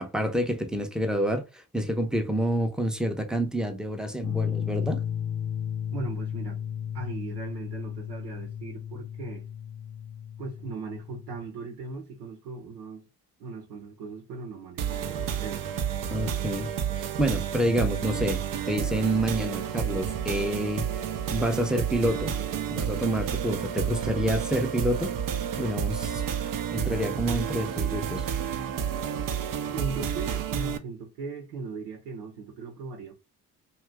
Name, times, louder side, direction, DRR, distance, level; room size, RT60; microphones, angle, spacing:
voice 1, 0.0-5.0 16.1-16.7 16.9-21.0 21.3-22.3 22.7-25.1 25.6-28.3, equal, ahead, 0.6 m, -28 dB
sound 1, 4.2-11.5, left 9 dB, 50° left, 0.7 m, -34 dB
voice 2, 5.9-6.6 6.9-9.5 10.4-13.1 13.4-15.7 29.7-33.1, right 4 dB, 85° right, 0.8 m, -38 dB
sound 2, 14.8-30.8, right 8 dB, 50° right, 0.6 m, -30 dB
2.7 x 2.4 x 3.3 m
hypercardioid pair, 50°, 42 cm